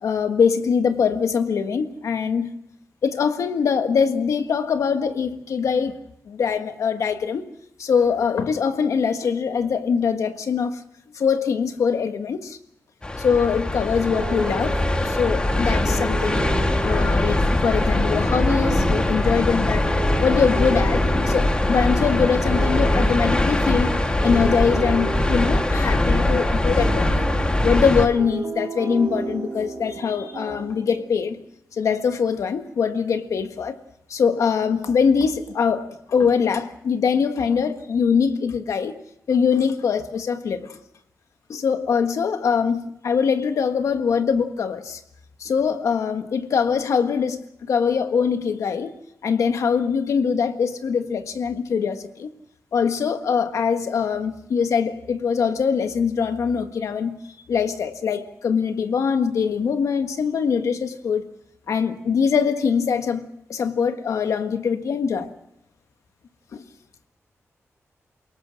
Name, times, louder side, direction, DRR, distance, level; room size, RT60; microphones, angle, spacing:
voice 1, 0.0-2.5 3.0-6.0 6.3-7.5 7.8-10.8 11.1-12.6 13.2-16.4 16.8-19.9 20.2-27.3 27.6-31.4 31.8-33.7 34.1-39.0 39.3-40.8 41.5-45.0 45.4-48.9 49.2-52.3 52.7-57.1 57.5-61.3 61.7-65.3 66.5-66.6, left 6 dB, 85° left, 1.5 m, -23 dB
sound 1, 13.0-28.1, left 1 dB, 20° left, 1.7 m, -21 dB
sound 2, 14.1-31.3, right 4 dB, 55° right, 3.0 m, -34 dB
28.5 x 18.5 x 6.3 m
wide cardioid pair, 150°, 5 cm